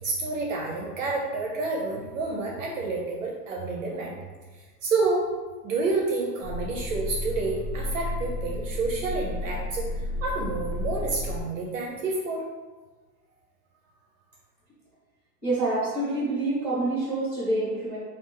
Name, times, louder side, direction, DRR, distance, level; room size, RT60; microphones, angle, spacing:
voice 1, 0.0-4.2 4.8-5.3 5.6-12.4, right 3 dB, 55° right, -1 dB, 0.5 m, -29 dB
sound 1, 6.4-11.4, left 1 dB, 65° left, 1.2 m, -32 dB
voice 2, 15.4-18.0, right 2 dB, 5° left, -8 dB, 0.9 m, -27 dB
3.2 x 2.4 x 3.6 m, 1.3 s
supercardioid pair, 170°, 49 cm